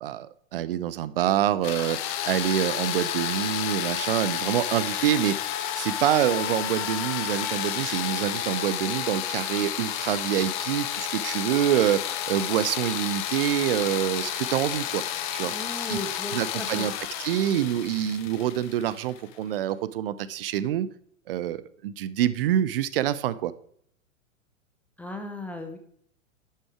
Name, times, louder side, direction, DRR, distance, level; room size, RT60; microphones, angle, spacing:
voice 1, 0.0-2.0 2.2-5.3 5.8-15.0 15.3-15.5 15.9-16.0 16.3-16.9 17.2-20.9 21.3-23.5, right 11 dB, 45° right, 16 dB, 0.6 m, -26 dB
sound 1, 1.6-19.3, left 11 dB, 35° left, 1.1 m, -31 dB
voice 2, 15.5-16.9 25.0-25.8, left 2 dB, 5° left, 4 dB, 0.4 m, -36 dB
11.5 x 6.1 x 4.8 m, 0.65 s
figure-of-eight pair, 105°, 40 cm